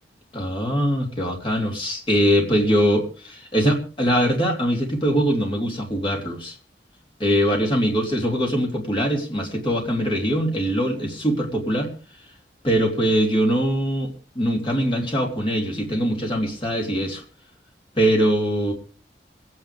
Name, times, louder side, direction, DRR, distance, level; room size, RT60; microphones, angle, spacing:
voice 1, 0.3-6.5 7.2-11.9 12.6-17.2 18.0-18.7, equal, 30° left, 3.2 m, -22 dB
25.5 x 9.6 x 3.4 m
head